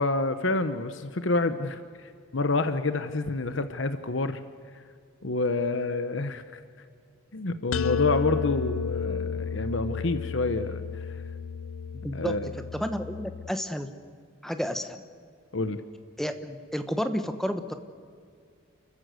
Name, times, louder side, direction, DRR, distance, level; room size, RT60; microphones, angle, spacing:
voice 1, 0.0-4.4 5.2-6.6 7.3-11.2 12.1-12.5 15.5-15.8, left 3 dB, 65° left, 10 dB, 1.0 m, -28 dB
sound 1, 7.7-13.5, left 6 dB, 85° left, 0.5 m, -32 dB
voice 2, 11.9-12.3 12.7-13.9 14.4-15.0 16.2-17.7, equal, ahead, 8 dB, 1.1 m, -31 dB
30.0 x 14.5 x 7.9 m, 2.2 s
head